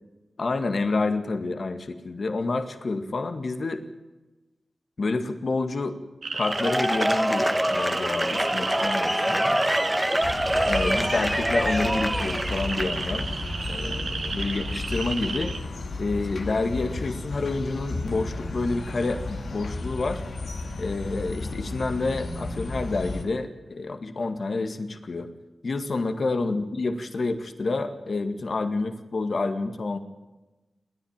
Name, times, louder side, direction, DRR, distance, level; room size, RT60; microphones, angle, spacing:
voice 1, 0.4-3.8 5.0-6.0 6.3-9.7 10.7-13.3 13.7-15.5 16.0-20.2 20.8-25.3 25.6-30.0, left 3 dB, 65° left, 8 dB, 2.0 m, -28 dB
sound 1, 6.2-15.6, right 4 dB, 85° right, 2.0 m, -34 dB
Cheering / Applause / Crowd, 6.4-13.2, equal, 5° right, 1.1 m, -25 dB
sound 2, 10.2-23.2, left 2 dB, 85° left, 2.2 m, -33 dB
28.0 x 11.0 x 8.9 m, 1.1 s
cardioid pair, 45°, 0 cm